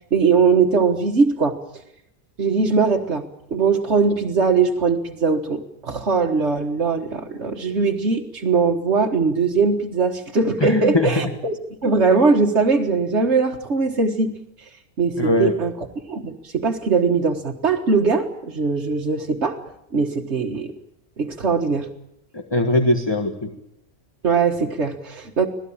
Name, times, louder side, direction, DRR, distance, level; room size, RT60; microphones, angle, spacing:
voice 1, 0.1-1.6 2.4-3.2 3.5-11.6 11.8-14.3 15.0-19.6 19.9-20.7 21.2-21.9 24.2-25.5, right 4 dB, 65° right, -1 dB, 1.9 m, -20 dB
voice 2, 10.6-11.1 15.2-15.6 22.3-23.5, left 2 dB, 20° left, 6 dB, 1.6 m, -20 dB
26.0 x 17.5 x 8.7 m, 0.78 s
omnidirectional pair, 1.3 m